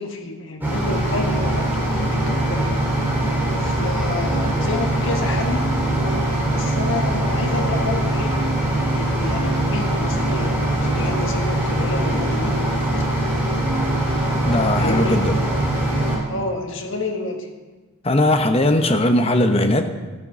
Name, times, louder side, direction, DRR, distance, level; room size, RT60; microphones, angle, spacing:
voice 1, 0.0-2.7 3.6-5.7 6.4-8.3 8.9-12.6 14.8-15.4 16.3-17.5, left 3 dB, 55° left, 3 dB, 1.6 m, -29 dB
sound 1, 0.6-16.2, right 1 dB, 10° right, 3.1 m, -22 dB
voice 2, 14.4-15.4 18.0-19.9, left 1 dB, 25° left, 7 dB, 0.9 m, -18 dB
12.0 x 9.6 x 6.2 m, 1.3 s
head